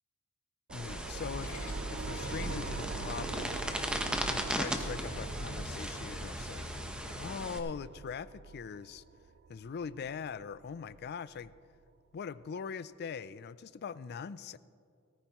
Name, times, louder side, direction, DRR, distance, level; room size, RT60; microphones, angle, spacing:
voice 1, 0.7-1.5 1.9-3.6 4.3-9.0 9.5-11.5 12.1-14.6, left 6 dB, 50° left, 16 dB, 0.4 m, -42 dB
sound 1, 0.7-7.6, equal, 5° right, 0.9 m, -37 dB
sound 2, 0.7-11.8, right 4 dB, 50° right, 0.3 m, -44 dB
sound 3, 1.1-7.1, left 1 dB, 70° left, 3.2 m, -45 dB
18.0 x 14.5 x 3.0 m, 2.3 s
head